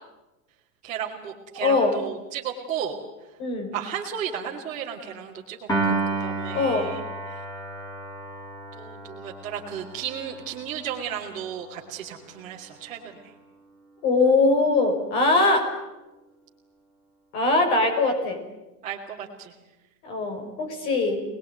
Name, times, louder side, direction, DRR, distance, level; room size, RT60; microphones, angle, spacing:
voice 1, 0.8-2.9 3.7-5.6 5.8-7.0 8.7-13.3 18.8-19.5, right 8 dB, 15° right, -7 dB, 3.0 m, -34 dB
voice 2, 1.6-2.0 3.4-3.7 6.5-6.9 14.0-15.7 17.3-18.4 20.0-21.2, left 3 dB, 40° left, 4 dB, 6.3 m, -22 dB
Piano, 5.7-12.1, right 3 dB, 10° left, 4.0 m, -32 dB
27.5 x 20.5 x 9.3 m, 1.0 s
supercardioid pair, 180°, 48 cm